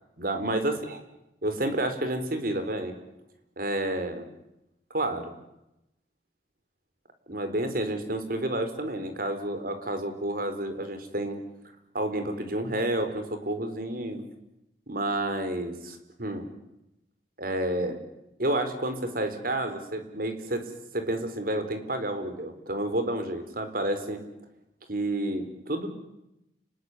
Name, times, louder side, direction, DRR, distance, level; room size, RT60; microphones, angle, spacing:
voice 1, 0.2-0.7 1.4-2.9 3.6-4.2 4.9-5.3 7.3-11.4 11.9-14.2 14.9-16.5 17.4-18.0 18.4-24.2 24.9-25.9, right 1 dB, 55° right, 8 dB, 4.6 m, -30 dB
30.0 x 20.0 x 9.9 m, 0.88 s
head